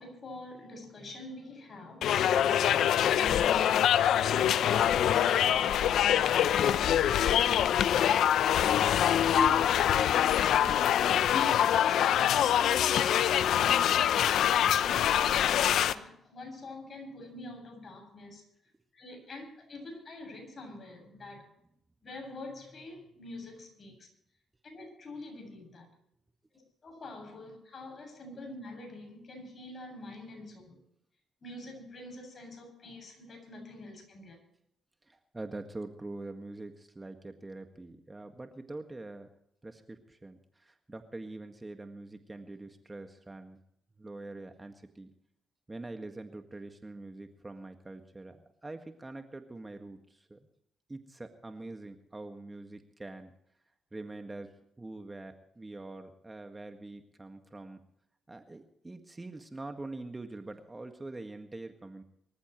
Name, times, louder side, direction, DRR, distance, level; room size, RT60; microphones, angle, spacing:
voice 1, 0.0-6.3 6.7-10.0 10.4-14.2 14.8-18.4 18.9-21.5 22.0-24.1 24.6-25.9 26.5-30.8 31.4-34.4, left 2 dB, 45° left, 7.6 m, -44 dB
sound 1, 2.0-15.9, left 10 dB, 75° left, 0.7 m, -25 dB
voice 2, 35.0-39.3 39.6-43.6 44.0-45.1 45.7-50.5 50.9-53.3 53.9-57.8 58.3-62.0, right 2 dB, 20° right, 1.8 m, -44 dB
24.5 x 14.5 x 3.2 m
cardioid pair, 70°, 0 cm